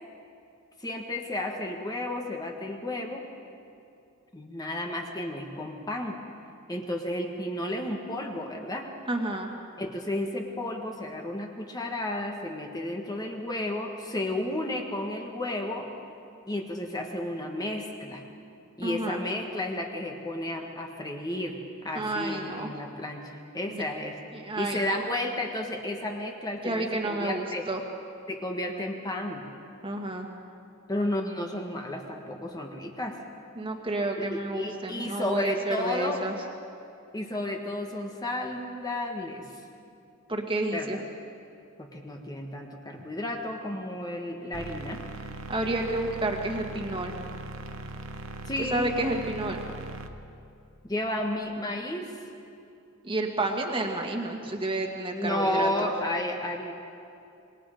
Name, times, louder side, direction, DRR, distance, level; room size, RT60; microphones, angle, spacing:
voice 1, 0.8-3.3 4.3-6.2 6.7-8.9 9.8-15.9 16.5-18.2 18.8-24.2 24.5-27.7 28.3-29.5 30.9-33.2 34.2-36.2 37.1-39.5 40.7-41.0 41.8-45.0 48.5-48.9 50.8-52.2 55.1-56.7, left 1 dB, 20° left, 2 dB, 1.5 m, -32 dB
voice 2, 9.1-9.5 18.8-19.2 21.9-22.7 23.7-23.8 24.3-25.0 26.6-27.8 29.8-30.3 33.6-36.3 40.3-41.0 45.5-47.1 48.7-49.6 53.0-55.9, right 2 dB, 25° right, 2 dB, 1.9 m, -30 dB
sound 1, 44.5-50.1, right 2 dB, 65° right, 1.2 m, -40 dB
26.5 x 21.0 x 5.1 m, 2.6 s
head